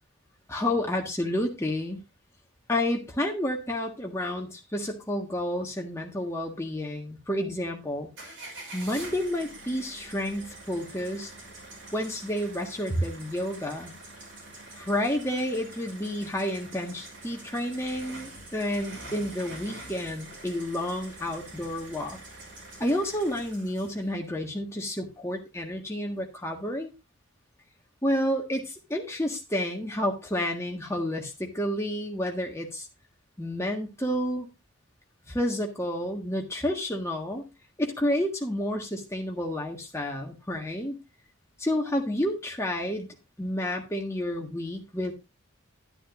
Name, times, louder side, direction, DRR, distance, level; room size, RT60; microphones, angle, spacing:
voice 1, 0.5-2.0 2.7-8.1 8.7-11.3 11.9-13.9 14.8-22.2 22.8-26.9 28.0-32.9 33.4-34.5 35.3-37.4 37.8-41.0 41.6-43.1 43.4-45.1, left 1 dB, 15° left, 2 dB, 1.5 m, -30 dB
sound 1, 8.2-24.1, right 2 dB, 60° right, 5.9 m, -45 dB
11.5 x 10.0 x 2.5 m, 0.24 s
head